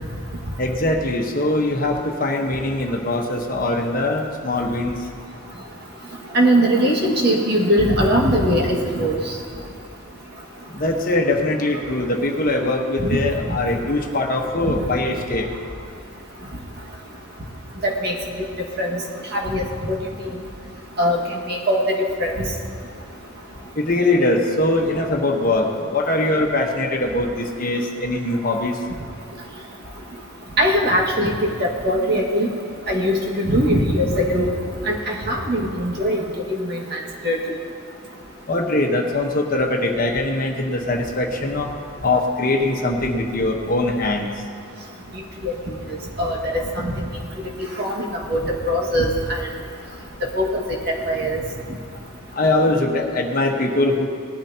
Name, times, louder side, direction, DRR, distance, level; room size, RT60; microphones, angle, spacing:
voice 1, 0.6-5.0 10.7-15.5 23.8-28.8 38.5-41.7 42.0-44.3 52.3-54.1, left 2 dB, 45° left, 2 dB, 1.2 m, -22 dB
voice 2, 6.3-9.3 13.0-13.2 13.5-13.6 17.8-18.1 18.8-19.0 19.3-20.0 21.0-22.3 30.6-32.5 32.9-34.5 34.8-36.2 36.5-37.5 45.4-45.5 46.2-47.1 47.8-49.5 50.3-51.4, equal, 50° right, -2 dB, 1.9 m, -21 dB
19.0 x 13.0 x 2.9 m, 2.3 s
head